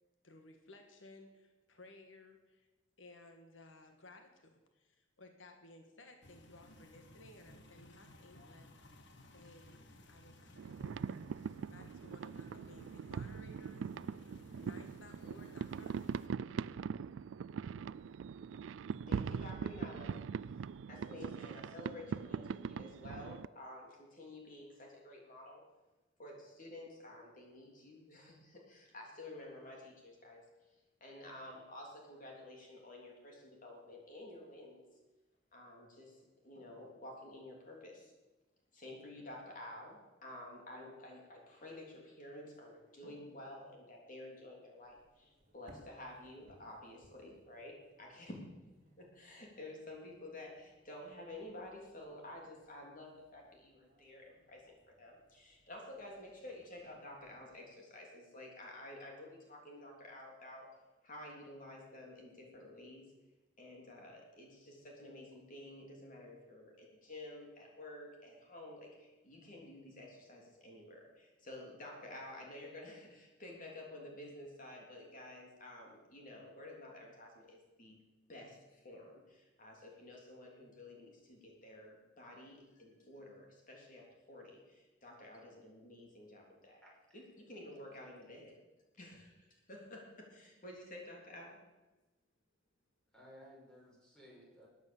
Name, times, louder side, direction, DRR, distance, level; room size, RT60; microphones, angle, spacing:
voice 1, 0.2-2.7 3.0-8.7 9.3-14.2 14.6-16.3, left 2 dB, 85° left, 5 dB, 1.6 m, -58 dB
sound 1, 6.2-16.3, left 1 dB, 65° left, 1.5 m, -59 dB
sound 2, 10.6-23.5, right 6 dB, 75° right, 0.3 m, -41 dB
voice 2, 19.1-20.2 20.9-25.6 26.2-30.5 31.0-34.8 35.5-38.1 38.7-48.4 49.0-60.7 61.0-63.1 63.6-78.0 78.3-86.8 87.1-88.6 88.9-91.6, left 1 dB, 45° left, 0 dB, 3.4 m, -51 dB
sound 3, 44.8-57.6, equal, 40° right, 3.1 m, -68 dB
voice 3, 86.8-87.2 93.1-94.7, equal, 5° left, -4 dB, 5.3 m, -58 dB
14.0 x 9.6 x 7.1 m, 1.1 s
head